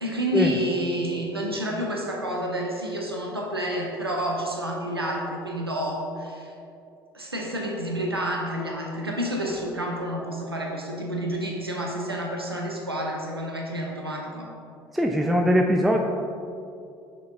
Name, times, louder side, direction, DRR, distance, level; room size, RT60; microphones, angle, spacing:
voice 1, 0.0-6.5 7.1-14.5, equal, 90° right, -1 dB, 0.6 m, -29 dB
voice 2, 14.9-16.0, equal, ahead, 1 dB, 0.4 m, -21 dB
6.2 x 4.3 x 4.5 m, 2.5 s
figure-of-eight pair, 60°, 12 cm